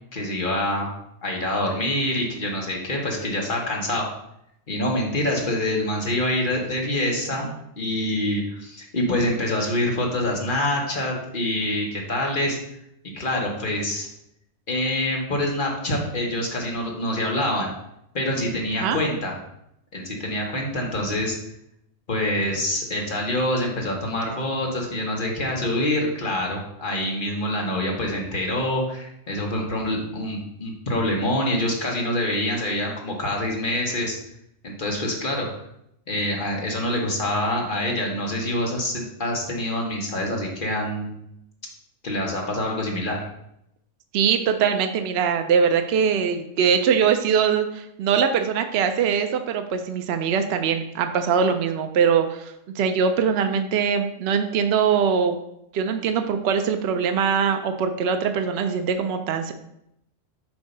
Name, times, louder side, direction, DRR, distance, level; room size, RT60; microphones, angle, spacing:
voice 1, 0.1-0.9 1.2-4.0 4.7-7.5 7.8-12.6 13.1-14.1 14.7-17.7 18.1-19.4 19.9-21.4 22.1-34.2 34.6-35.5 36.1-41.1 42.0-43.2, left 1 dB, 45° left, -1 dB, 1.5 m, -26 dB
voice 2, 44.1-55.4 55.7-59.5, right 7 dB, 65° right, 7 dB, 0.8 m, -22 dB
7.9 x 2.8 x 5.4 m, 0.79 s
omnidirectional pair, 1.3 m